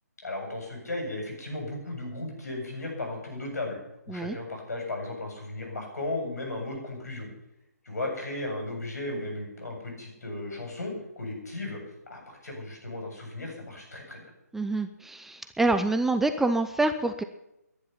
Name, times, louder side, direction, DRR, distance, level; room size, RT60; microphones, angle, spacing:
voice 1, 0.2-3.8 4.1-7.3 7.8-11.8 12.1-14.2, left 2 dB, 75° left, 1 dB, 8.0 m, -35 dB
voice 2, 14.5-17.2, right 2 dB, 5° right, 8 dB, 0.5 m, -26 dB
20.5 x 10.5 x 5.7 m, 0.87 s
figure-of-eight pair, 145°, 9 cm